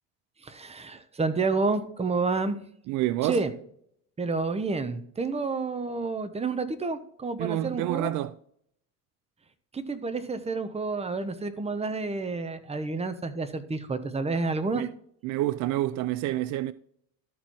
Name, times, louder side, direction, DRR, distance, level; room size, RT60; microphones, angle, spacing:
voice 1, 0.4-2.6 3.2-3.5 4.2-8.1 9.7-14.8, right 3 dB, 15° right, 1.0 m, -29 dB
voice 2, 2.9-3.4 7.4-8.3 14.7-14.9 15.2-16.7, right 15 dB, 50° right, 0.4 m, -28 dB
13.0 x 4.5 x 4.6 m
supercardioid pair, 95°, 38 cm